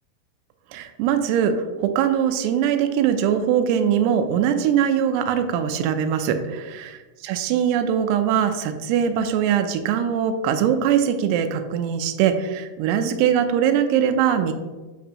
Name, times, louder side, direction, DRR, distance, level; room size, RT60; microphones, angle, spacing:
voice 1, 0.7-7.0 7.2-14.5, right 8 dB, 90° right, 8 dB, 2.7 m, -21 dB
7.3 x 5.8 x 2.9 m, 1.2 s
omnidirectional pair, 4.7 m